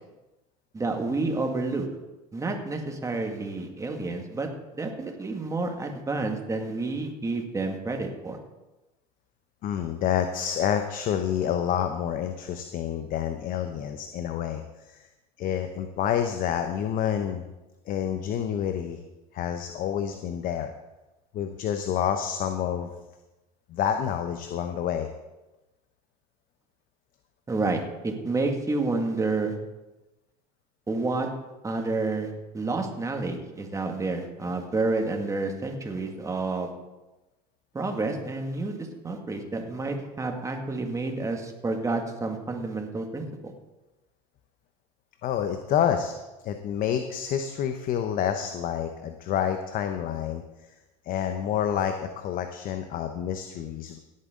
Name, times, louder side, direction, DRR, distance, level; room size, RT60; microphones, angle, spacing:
voice 1, 0.7-1.9 2.3-4.5 4.8-8.4 27.5-29.6 30.9-31.3 31.6-36.7 37.7-43.5, right 3 dB, 15° right, 3 dB, 2.1 m, -29 dB
voice 2, 9.6-14.6 14.9-15.0 15.4-17.4 17.9-19.0 19.3-20.7 21.3-23.0 23.7-25.1 45.2-46.1 46.4-50.7 51.1-54.0, left 9 dB, 50° left, 7 dB, 0.9 m, -28 dB
17.0 x 8.5 x 3.8 m, 1.0 s
supercardioid pair, 95°, 19 cm